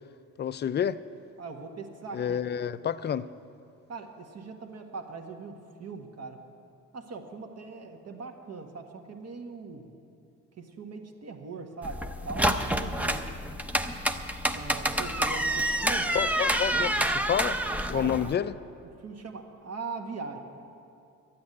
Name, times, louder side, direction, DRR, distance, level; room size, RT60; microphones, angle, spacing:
voice 1, 0.4-1.0 2.1-3.3 16.1-17.6 17.9-18.5, left 9 dB, 35° left, 15 dB, 0.4 m, -29 dB
voice 2, 1.4-2.4 3.9-6.4 6.9-9.9 10.6-13.2 14.5-16.1 17.9-18.3 19.0-20.4, right 4 dB, 55° right, 4 dB, 1.6 m, -40 dB
sound 1, 11.8-18.3, right 1 dB, 5° right, 0.7 m, -28 dB
12.5 x 8.5 x 9.7 m, 2.6 s
cardioid pair, 90°, 30 cm